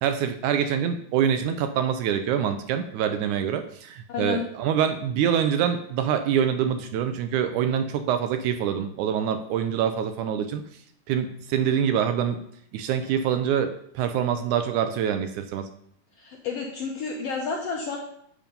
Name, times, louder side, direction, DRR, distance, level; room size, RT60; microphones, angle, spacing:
voice 1, 0.0-10.6 11.1-12.4 12.7-15.7, right 8 dB, 75° right, 8 dB, 1.9 m, -25 dB
voice 2, 4.1-4.4 16.2-18.0, left 5 dB, 70° left, 0 dB, 1.5 m, -30 dB
7.4 x 7.1 x 5.3 m, 0.70 s
omnidirectional pair, 3.8 m